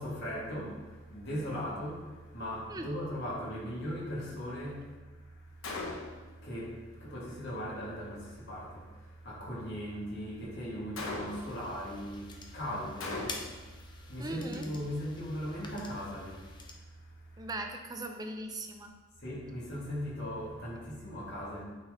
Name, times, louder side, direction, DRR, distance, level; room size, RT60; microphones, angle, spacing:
voice 1, 0.0-17.5 19.2-21.6, equal, 55° left, -6 dB, 2.2 m, -39 dB
Gunshot gunfire, 5.6-6.3 11.0-11.6 13.0-13.7, left 2 dB, 70° left, 0.9 m, -38 dB
sound 1, 11.3-16.7, left 3 dB, 20° left, 0.6 m, -48 dB
voice 2, 14.2-14.7 17.4-19.0, right 1 dB, 20° right, 4 dB, 0.6 m, -39 dB
8.7 x 3.8 x 3.8 m, 1.3 s
head